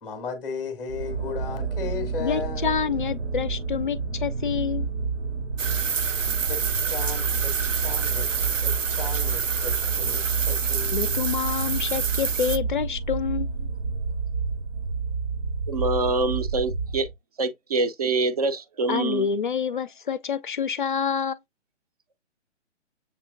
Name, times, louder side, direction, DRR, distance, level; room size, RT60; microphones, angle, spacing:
voice 1, 0.0-2.8 6.5-11.2, left 5 dB, 10° left, 0.7 m, -36 dB
sound 1, 0.9-17.1, right 4 dB, 65° right, 0.9 m, -30 dB
voice 2, 2.2-4.9 10.9-13.7 18.9-21.4, left 7 dB, 45° left, 0.5 m, -27 dB
sound 2, 5.6-12.6, right 6 dB, 90° right, 0.5 m, -28 dB
voice 3, 15.7-17.1 17.4-19.3, right 3 dB, 30° right, 0.5 m, -25 dB
7.1 x 2.8 x 2.5 m
figure-of-eight pair, 140°, 37 cm